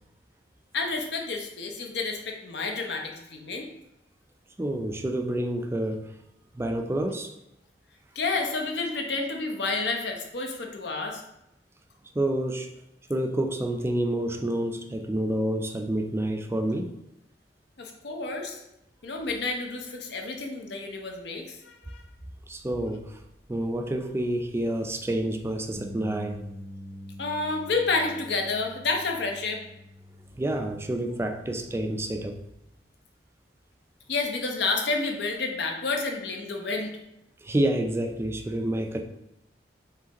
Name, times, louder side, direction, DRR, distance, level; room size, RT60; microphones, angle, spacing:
voice 1, 0.7-3.7 8.1-11.2 17.8-18.6 19.0-22.0 27.2-29.6 34.1-36.9, left 3 dB, 70° left, 2 dB, 0.7 m, -30 dB
voice 2, 4.6-6.1 6.5-7.3 12.1-12.7 13.1-16.9 22.5-23.2 23.5-26.4 30.4-32.4 37.4-39.0, right 1 dB, 15° right, 5 dB, 0.4 m, -28 dB
Bass guitar, 25.7-32.0, left 1 dB, 75° right, 0.8 m, -45 dB
4.9 x 3.4 x 2.9 m, 0.85 s
head